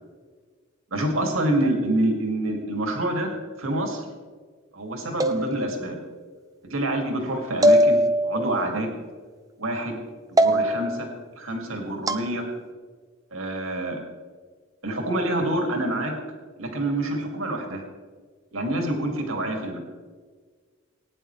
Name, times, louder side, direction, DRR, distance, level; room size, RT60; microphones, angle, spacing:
voice 1, 0.9-3.3 3.6-4.0 4.7-6.0 6.7-8.9 9.6-10.0 10.3-11.1 11.4-12.4 13.3-14.0 14.8-16.2 16.6-17.8 18.5-19.8, right 1 dB, 85° right, 2 dB, 2.7 m, -27 dB
sound 1, 5.2-6.0 7.6-8.6 10.4-11.0 12.1-12.3, equal, 15° right, 0.6 m, -20 dB
19.0 x 10.0 x 3.4 m, 1.5 s
head